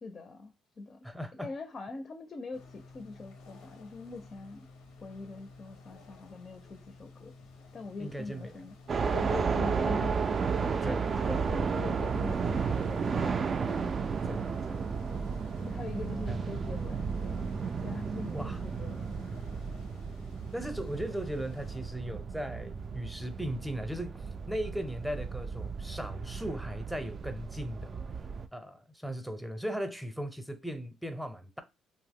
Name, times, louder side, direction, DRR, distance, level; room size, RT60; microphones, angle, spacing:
voice 1, 0.0-1.0 1.3-4.7 5.0-7.4 7.7-8.8 9.1-14.1 15.6-17.5 17.8-19.1, left 3 dB, 40° left, 0.4 m, -42 dB
voice 2, 1.0-1.5 8.0-8.7 10.8-11.1 14.2-15.2 16.3-16.4 18.3-18.6 20.5-28.0 28.5-31.6, equal, 5° right, 0.6 m, -38 dB
sound 1, 2.5-21.8, left 3 dB, 90° left, 0.6 m, -53 dB
sound 2, 8.9-28.5, right 5 dB, 45° right, 0.3 m, -33 dB
2.7 x 2.0 x 3.5 m
cardioid pair, 80°, 0 cm